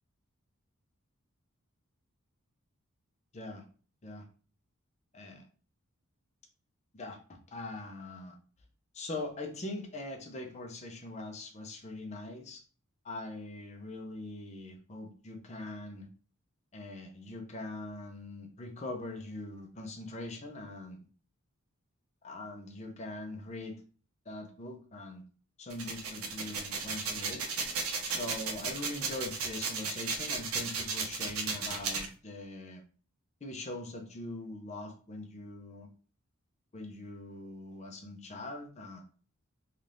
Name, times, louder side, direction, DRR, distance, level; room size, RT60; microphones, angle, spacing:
voice 1, 3.3-3.6 4.0-4.2 5.1-5.4 6.9-7.2 7.5-8.4 8.9-12.6 13.0-16.1 16.7-21.1 22.2-23.8 24.3-25.2 25.6-27.4 28.0-32.8 33.4-35.9 36.7-39.0, left 2 dB, 30° left, 3 dB, 0.5 m, -42 dB
sound 1, 25.7-32.1, right 4 dB, 80° right, 0.6 m, -34 dB
2.6 x 2.3 x 3.3 m, 0.39 s
head